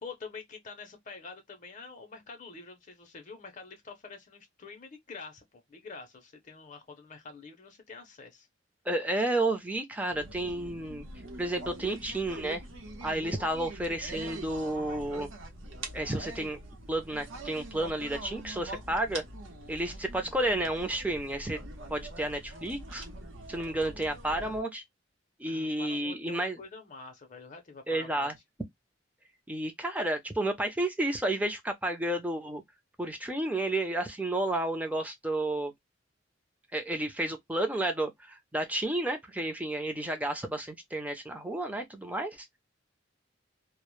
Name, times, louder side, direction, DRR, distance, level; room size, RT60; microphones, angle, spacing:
voice 1, 0.0-8.5 25.5-28.3, left 4 dB, 40° left, 0.5 m, -46 dB
voice 2, 8.9-11.1 11.4-12.6 13.0-15.3 15.9-16.6 16.9-19.2 19.7-21.6 21.9-23.0 23.5-24.8 25.4-26.6 27.9-28.3 29.5-32.6 33.0-35.7 36.7-42.4, right 1 dB, 10° right, 0.4 m, -31 dB
sound 1, 10.1-24.6, right 2 dB, 80° right, 0.7 m, -44 dB
2.0 x 2.0 x 3.0 m
head